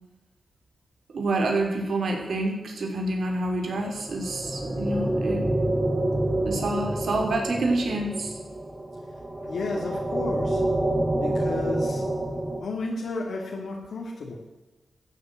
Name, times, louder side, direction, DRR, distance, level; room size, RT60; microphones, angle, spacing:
voice 1, 1.1-5.4 6.4-8.3, right 2 dB, 70° right, 2 dB, 3.4 m, -27 dB
sound 1, 3.7-12.6, right 1 dB, 20° right, 3.4 m, -28 dB
voice 2, 9.4-10.6 11.2-12.1 12.6-14.4, left 3 dB, 85° left, -1 dB, 2.1 m, -32 dB
14.5 x 8.8 x 7.5 m, 1.1 s
cardioid pair, 85°, 0 cm